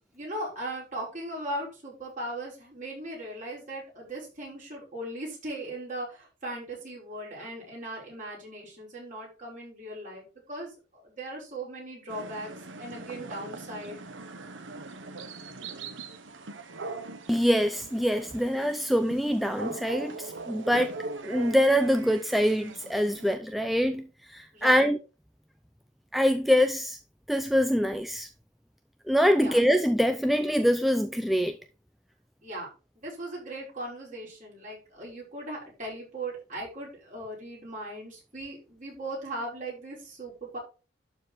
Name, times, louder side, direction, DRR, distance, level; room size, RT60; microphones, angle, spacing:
voice 1, 0.1-12.5 12.8-14.0 24.5-24.9 29.4-29.6 32.4-32.7 33.0-40.6, right 1 dB, 45° right, 5.7 m, -38 dB
sound 1, 12.1-23.4, right 3 dB, 85° right, 1.1 m, -41 dB
voice 2, 17.3-20.9 21.2-25.0 26.1-27.0 27.3-28.3 29.1-31.6, equal, ahead, 0.5 m, -24 dB
12.0 x 4.7 x 4.1 m
head